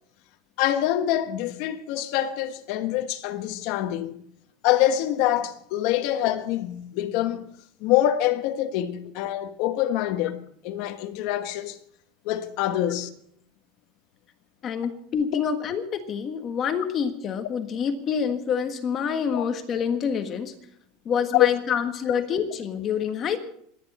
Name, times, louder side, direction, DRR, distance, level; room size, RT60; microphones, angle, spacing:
voice 1, 0.6-4.2 4.6-7.5 7.8-11.8 12.2-13.1 15.3-15.4 19.3-19.4 21.3-21.5, left 13 dB, 55° left, 1.3 m, -25 dB
voice 2, 14.6-20.5 21.0-23.4, left 7 dB, 30° left, 1.5 m, -27 dB
27.0 x 10.5 x 4.3 m
supercardioid pair, 155°, 0 cm